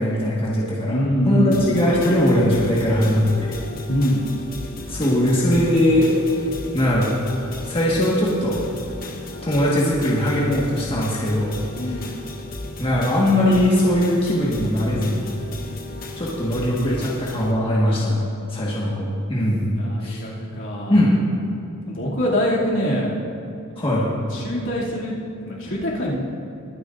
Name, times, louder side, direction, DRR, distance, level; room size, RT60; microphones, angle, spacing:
voice 1, 0.0-1.0 1.2-3.5 4.9-6.1 6.7-7.1 7.6-8.6 9.4-12.0 12.8-15.3 16.2-18.2 18.5-19.6 20.0-20.2 20.9-21.2 23.8-24.0, left 1 dB, 25° left, -6 dB, 1.6 m, -20 dB
voice 2, 0.9-1.6 3.9-4.2 11.8-12.1 19.8-21.0 21.9-23.1 23.9-26.2, equal, 60° left, -6 dB, 2.7 m, -24 dB
sound 1, 1.5-17.5, left 2 dB, 40° left, 1.1 m, -35 dB
22.0 x 9.6 x 2.6 m, 2.8 s
head